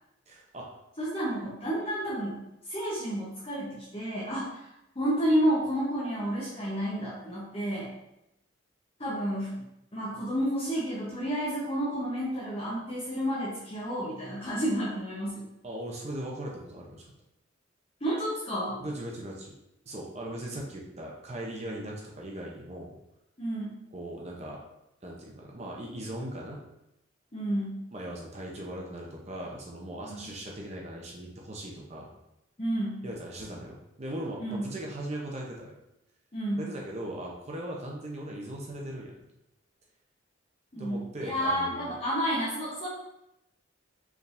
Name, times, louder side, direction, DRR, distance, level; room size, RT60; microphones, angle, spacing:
voice 1, 0.3-0.7 15.6-17.1 18.8-19.5 19.8-23.0 23.9-24.6 25.0-26.6 27.9-32.1 33.0-35.8 36.6-39.1 40.8-41.9, right 1 dB, 35° right, -2 dB, 0.6 m, -39 dB
voice 2, 1.0-4.7 4.9-7.9 9.0-9.6 9.9-15.5 18.0-18.8 23.4-23.7 27.3-27.8 30.1-30.3 32.6-33.0 34.4-34.7 36.3-36.6 40.7-42.9, equal, 30° left, -8 dB, 0.9 m, -30 dB
4.9 x 3.4 x 2.6 m, 0.86 s
head